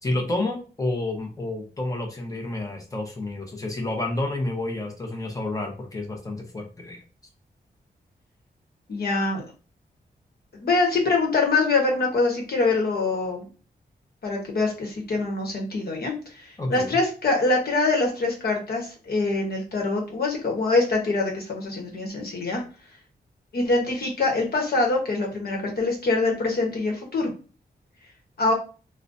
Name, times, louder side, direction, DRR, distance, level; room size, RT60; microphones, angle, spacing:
voice 1, 0.0-7.0 16.6-16.9, left 2 dB, 20° left, 2 dB, 0.8 m, -29 dB
voice 2, 8.9-9.5 10.5-13.5 14.2-22.6 23.5-27.3 28.4-28.5, left 3 dB, 65° left, 1 dB, 1.0 m, -24 dB
3.8 x 2.2 x 2.5 m, 0.35 s
wide cardioid pair, 135°, 17 cm